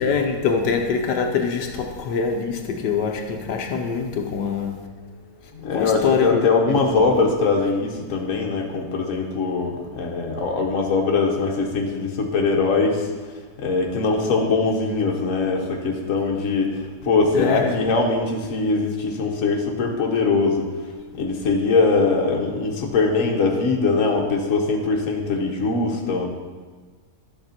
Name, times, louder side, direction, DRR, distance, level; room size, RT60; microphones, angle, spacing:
voice 1, 0.0-4.9 5.7-7.3 17.3-17.8, left 5 dB, 85° left, 3 dB, 1.4 m, -24 dB
voice 2, 5.5-13.1 13.6-20.7 21.1-26.3, left 4 dB, 55° left, 1 dB, 1.5 m, -22 dB
12.0 x 6.6 x 4.4 m, 1.4 s
omnidirectional pair, 1.8 m